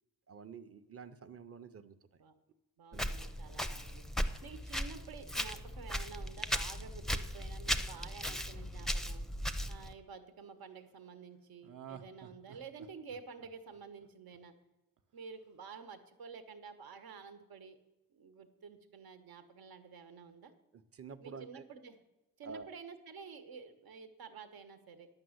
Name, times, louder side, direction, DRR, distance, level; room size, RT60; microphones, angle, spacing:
voice 1, 0.3-2.0 2.9-3.1 20.7-21.7 22.4-22.7, right 5 dB, 40° right, 11 dB, 0.7 m, -49 dB
voice 2, 2.8-9.2 9.7-14.5 15.1-17.8 18.1-20.5 21.2-22.0 22.4-25.1, right 5 dB, 85° right, 8 dB, 1.2 m, -50 dB
Walk footsteps, 2.9-9.9, equal, ahead, 0.5 m, -37 dB
Laughter, 5.8-10.0 11.6-14.6 15.0-15.1, right 8 dB, 65° right, 0.9 m, -55 dB
10.5 x 6.1 x 7.9 m, 1.0 s
wide cardioid pair, 135°, 36 cm